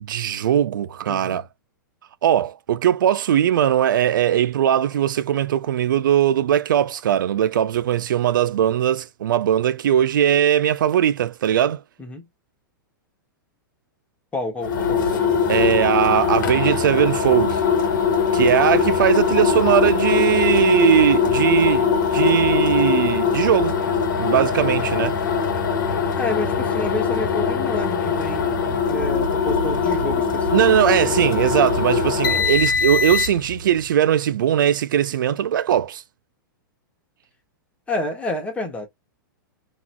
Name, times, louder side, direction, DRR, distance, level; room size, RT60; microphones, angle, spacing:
voice 1, 0.1-1.5 2.2-11.8 15.5-17.6 18.3-23.8 24.2-25.2 30.5-36.0, right 10 dB, 70° right, 0.4 m, -19 dB
voice 2, 1.1-1.4 12.0-12.2 14.3-15.7 26.1-30.5 30.9-31.4 37.9-38.9, left 2 dB, 10° left, 1.5 m, -30 dB
sound 1, 14.6-33.6, left 6 dB, 65° left, 1.2 m, -21 dB
3.8 x 3.0 x 2.2 m
hypercardioid pair, 110°, 11 cm